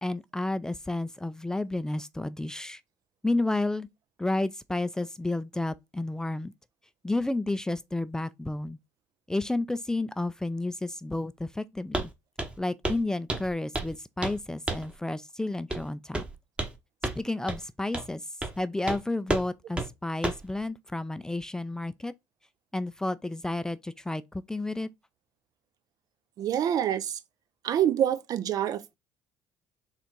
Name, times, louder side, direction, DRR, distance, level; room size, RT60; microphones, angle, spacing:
voice 1, 0.0-2.8 3.2-3.9 4.2-6.5 7.0-8.8 9.3-12.1 12.6-16.2 17.2-18.2 18.6-22.1 22.7-24.9, left 2 dB, 10° left, 0.4 m, -31 dB
Walk footsteps, 11.9-12.1 12.4-12.6 12.8-13.0 13.3-13.9 14.2-14.4 14.7-14.9 15.7-15.9 16.1-16.8 17.0-17.2 17.5-17.6 17.9-18.1 18.4-18.6 18.9-19.0 19.3-19.5 19.8-19.9 20.2-20.5, right 2 dB, 15° right, 1.1 m, -31 dB
voice 2, 26.4-27.2 27.6-28.9, right 10 dB, 55° right, 0.6 m, -26 dB
4.2 x 2.5 x 4.5 m
supercardioid pair, 75°, 7 cm